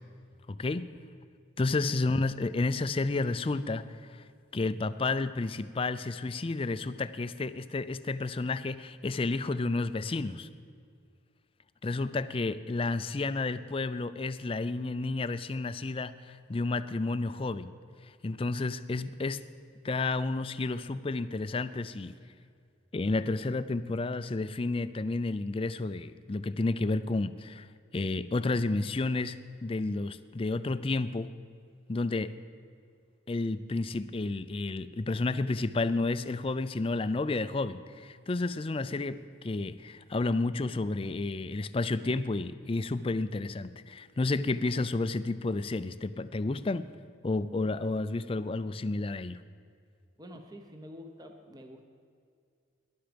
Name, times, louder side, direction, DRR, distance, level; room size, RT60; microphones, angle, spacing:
voice 1, 0.5-0.9 1.6-4.2 4.5-10.5 11.8-17.7 18.2-19.4 19.8-22.1 22.9-27.7 27.9-31.3 31.9-32.3 33.3-46.9 47.2-49.4, left 3 dB, 30° left, 13 dB, 0.4 m, -31 dB
voice 2, 1.8-2.2 50.2-51.9, equal, 20° right, 4 dB, 0.9 m, -48 dB
18.5 x 11.5 x 5.2 m, 2.3 s
head